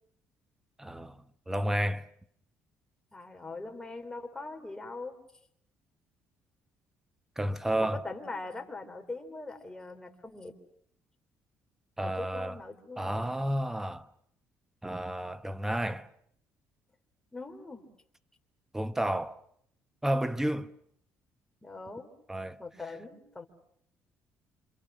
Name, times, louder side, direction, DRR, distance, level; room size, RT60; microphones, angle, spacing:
voice 1, 0.8-2.1 7.4-8.0 12.0-12.6 13.0-14.1 14.8-16.1 18.7-19.4 20.0-20.7 22.3-22.6, right 1 dB, 5° right, 1.0 m, -31 dB
voice 2, 3.1-5.2 7.7-10.5 12.0-13.3 17.3-17.9 21.6-22.1 22.6-23.5, left 3 dB, 10° left, 3.5 m, -41 dB
27.5 x 27.0 x 6.3 m
cardioid pair, 120°, 5 cm